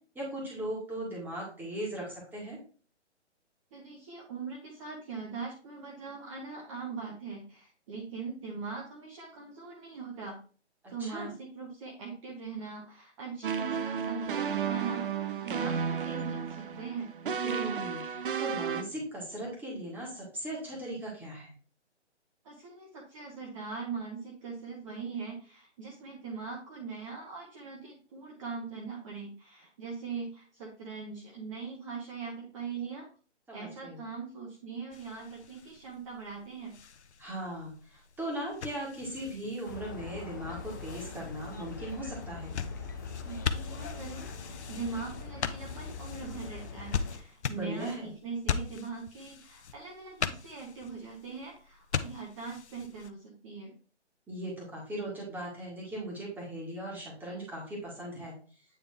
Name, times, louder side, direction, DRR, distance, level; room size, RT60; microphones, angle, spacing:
voice 1, 0.2-2.6 11.0-11.3 17.4-21.5 33.5-34.0 37.2-42.7 47.5-48.1 54.3-58.4, right 1 dB, 5° right, -4 dB, 1.8 m, -38 dB
voice 2, 3.7-10.4 10.9-17.1 22.4-33.1 33.5-36.7 43.2-53.7, right 5 dB, 25° right, -1 dB, 1.2 m, -41 dB
sound 1, 13.4-18.8, right 7 dB, 50° right, 0.7 m, -33 dB
sound 2, 34.9-53.1, left 6 dB, 70° left, 0.7 m, -40 dB
sound 3, 39.7-47.2, left 5 dB, 15° left, 0.5 m, -42 dB
8.8 x 3.6 x 3.5 m, 0.39 s
figure-of-eight pair, 145°, 35 cm